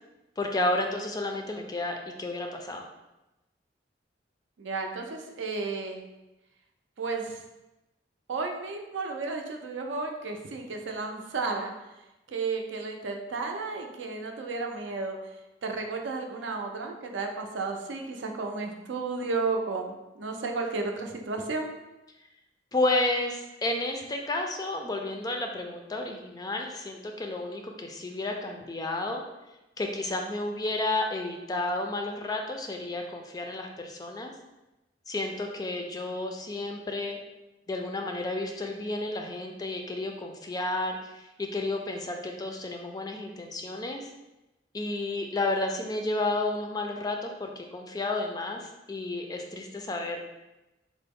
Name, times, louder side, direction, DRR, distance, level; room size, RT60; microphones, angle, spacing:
voice 1, 0.4-2.8 22.7-29.2 29.8-34.3 35.1-37.2 37.7-44.1 44.7-50.2, left 2 dB, 20° left, 3 dB, 0.3 m, -31 dB
voice 2, 4.6-6.0 7.0-7.4 8.3-11.7 12.3-15.2 15.6-21.7, right 3 dB, 85° right, 3 dB, 0.5 m, -33 dB
3.8 x 2.0 x 3.5 m, 0.98 s
head